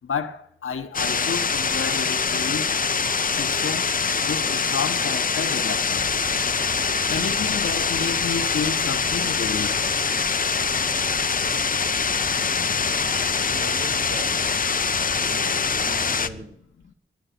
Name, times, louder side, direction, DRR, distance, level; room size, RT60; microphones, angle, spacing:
voice 1, 0.0-2.7 3.4-3.9 4.2-6.1 7.1-9.8, left 5 dB, 90° left, 1.0 m, -30 dB
sound 1, 0.9-16.3, left 5 dB, 40° left, 0.5 m, -24 dB
sound 2, 5.8-16.4, right 1 dB, 45° right, 3.4 m, -41 dB
voice 2, 13.3-14.3 15.2-16.6, right 1 dB, 65° right, 2.7 m, -40 dB
10.5 x 10.0 x 8.4 m
wide cardioid pair, 115°, 21 cm